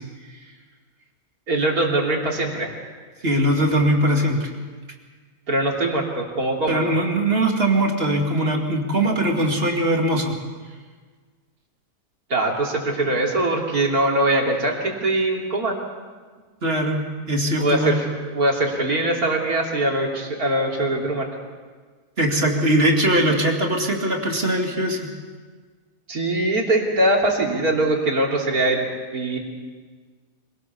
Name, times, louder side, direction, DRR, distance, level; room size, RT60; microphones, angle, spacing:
voice 1, 1.5-2.8 5.5-7.0 12.3-15.8 17.6-21.3 26.1-28.9 29.1-29.4, right 2 dB, 80° right, -1 dB, 3.6 m, -22 dB
voice 2, 3.2-4.5 6.7-10.3 16.6-18.0 22.2-25.1, right 1 dB, 40° right, 1 dB, 2.8 m, -21 dB
25.5 x 18.0 x 7.0 m, 1.5 s
omnidirectional pair, 1.6 m